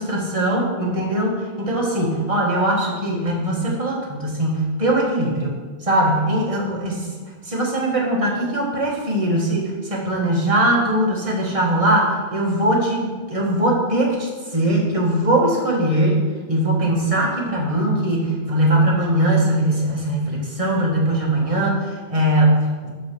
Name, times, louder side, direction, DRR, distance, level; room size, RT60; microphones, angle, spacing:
voice 1, 0.0-7.1 7.4-16.2 16.5-22.9, right 1 dB, 30° right, -3 dB, 1.5 m, -20 dB
6.3 x 4.9 x 5.9 m, 1.4 s
omnidirectional pair, 1.2 m